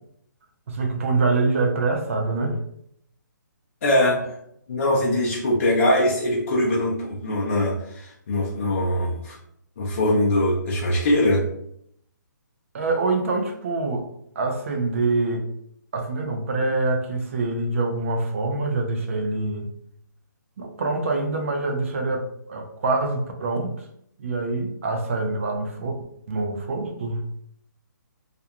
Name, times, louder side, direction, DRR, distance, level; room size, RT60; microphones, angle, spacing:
voice 1, 0.7-2.6 12.7-14.1 14.4-15.4 15.9-19.7 20.6-23.7 24.2-27.2, right 3 dB, 40° right, 3 dB, 0.4 m, -25 dB
voice 2, 3.8-4.4 4.7-9.4 9.8-11.4, left 1 dB, 45° left, -3 dB, 0.5 m, -22 dB
2.4 x 2.2 x 2.8 m, 0.71 s
hypercardioid pair, 165°, 11 cm